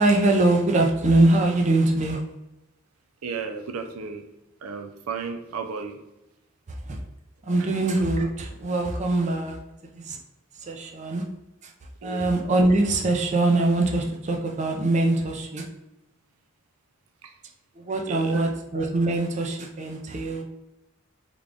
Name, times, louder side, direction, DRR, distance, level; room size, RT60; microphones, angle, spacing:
voice 1, 0.0-2.2 6.7-7.0 7.4-9.6 9.9-10.2 10.6-11.2 12.0-15.7 17.8-20.4, right 2 dB, 35° right, 2 dB, 0.5 m, -23 dB
voice 2, 3.2-4.2 4.6-6.0 7.6-7.7 12.0-12.2 17.2-17.3 18.1-18.4, right 5 dB, 90° right, 6 dB, 0.5 m, -34 dB
3.7 x 2.3 x 3.5 m, 0.93 s
head